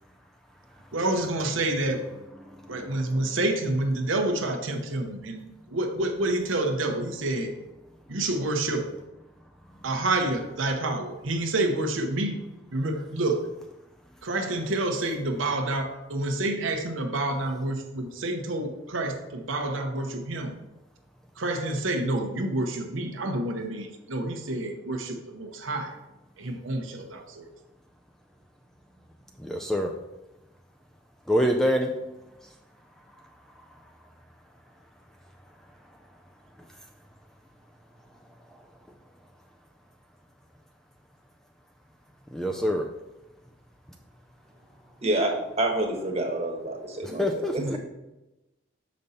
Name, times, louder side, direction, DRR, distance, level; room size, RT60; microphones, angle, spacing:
voice 1, 0.9-2.0 2.7-7.5 8.1-8.9 9.8-12.4 12.7-13.5 14.2-20.5 21.4-26.0 26.4-27.5, right 2 dB, 75° right, 4 dB, 0.9 m, -28 dB
voice 2, 29.4-29.9 31.3-31.9 42.3-42.9 47.2-47.8, equal, ahead, 2 dB, 0.3 m, -25 dB
voice 3, 45.0-47.8, right 1 dB, 30° right, 1 dB, 1.2 m, -28 dB
6.8 x 5.2 x 4.1 m, 1.0 s
head